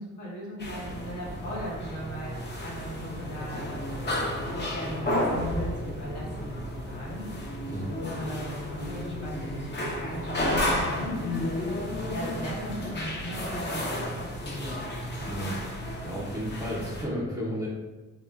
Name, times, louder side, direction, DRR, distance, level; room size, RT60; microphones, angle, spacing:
voice 1, 0.0-4.0 4.7-7.3 8.0-11.2 12.1-14.8, equal, 75° left, -6 dB, 1.0 m, -38 dB
sound 1, 0.6-17.1, left 1 dB, 35° left, 0.6 m, -32 dB
voice 2, 15.3-15.6 16.0-17.7, equal, 10° right, -5 dB, 0.5 m, -33 dB
3.7 x 2.1 x 2.2 m, 1.2 s
cardioid pair, 90°, 30 cm